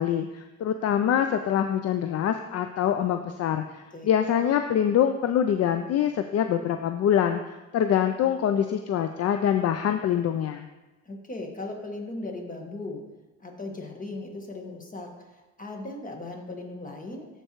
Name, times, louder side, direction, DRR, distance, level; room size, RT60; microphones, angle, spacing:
voice 1, 0.0-10.7, left 9 dB, 55° left, 7 dB, 0.5 m, -25 dB
voice 2, 11.0-13.0 13.4-17.3, left 2 dB, 25° left, 2 dB, 1.6 m, -37 dB
13.0 x 4.5 x 3.1 m, 1.1 s
cardioid pair, 90°, 30 cm